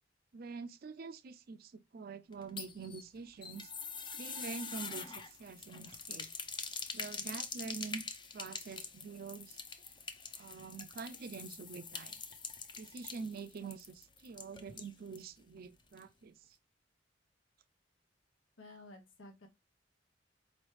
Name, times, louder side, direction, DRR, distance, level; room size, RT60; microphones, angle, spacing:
voice 1, 0.3-3.7 4.2-6.3 6.9-8.0 8.3-9.6 10.4-12.1 12.8-16.4, right 5 dB, 50° right, 0.4 m, -46 dB
sound 1, 2.3-15.3 15.6-15.7 16.0-16.1, left 5 dB, 25° left, 0.5 m, -45 dB
voice 2, 18.6-19.5, left 2 dB, 85° left, 1.1 m, -53 dB
4.5 x 3.0 x 3.1 m
head